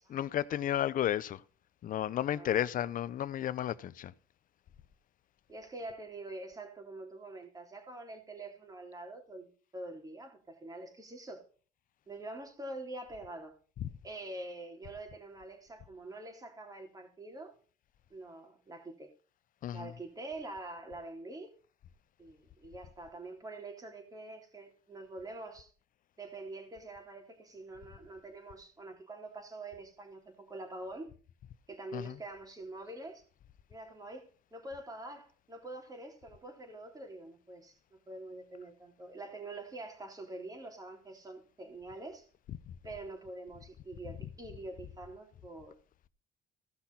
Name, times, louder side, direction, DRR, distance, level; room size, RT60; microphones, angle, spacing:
voice 1, 0.1-1.4 1.8-4.1 13.8-13.9 19.6-19.9 31.9-32.2 42.7-42.8, left 11 dB, 55° left, 0.7 m, -33 dB
voice 2, 5.5-11.4 12.1-13.6 14.0-17.5 18.1-19.1 19.7-21.5 22.2-25.7 26.2-31.1 31.7-33.2 33.7-42.3 42.8-45.7, right 2 dB, 20° right, 3.3 m, -45 dB
16.5 x 5.9 x 4.1 m
cardioid pair, 110°, 17 cm